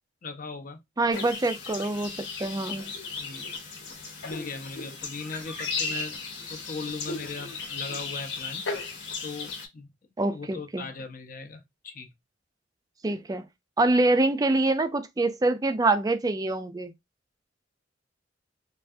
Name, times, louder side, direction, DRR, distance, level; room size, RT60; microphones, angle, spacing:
voice 1, 0.2-0.8 3.1-3.5 4.2-6.2 6.5-8.7 9.2-9.9 10.3-12.1, left 4 dB, 45° left, 0.5 m, -39 dB
voice 2, 1.0-2.9 10.2-10.9 13.0-13.4 13.8-16.9, right 2 dB, 20° right, 0.4 m, -25 dB
sound 1, 1.1-9.7, left 4 dB, 65° left, 0.9 m, -36 dB
3.3 x 2.4 x 2.6 m
head